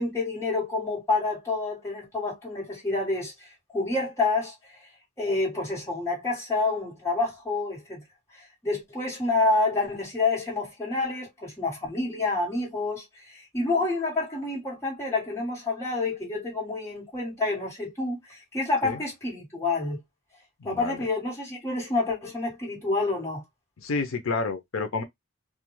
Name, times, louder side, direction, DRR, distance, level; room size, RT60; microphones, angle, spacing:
voice 1, 0.0-4.8 5.2-8.0 8.3-20.0 20.6-23.4, left 3 dB, 15° left, 1.4 m, -28 dB
voice 2, 20.6-21.0 23.8-25.0, left 4 dB, 75° left, 0.5 m, -29 dB
2.3 x 2.2 x 3.0 m
head